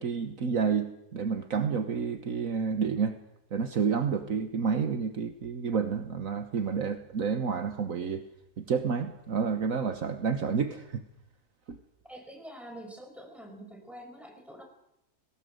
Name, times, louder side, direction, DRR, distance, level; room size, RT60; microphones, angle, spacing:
voice 1, 0.0-3.2 3.5-8.2 8.6-11.0 11.7-11.8, right 6 dB, 65° right, 8 dB, 1.6 m, -29 dB
voice 2, 12.1-14.6, right 1 dB, ahead, 2 dB, 5.7 m, -46 dB
20.0 x 18.0 x 8.0 m, 0.82 s
omnidirectional pair, 1.6 m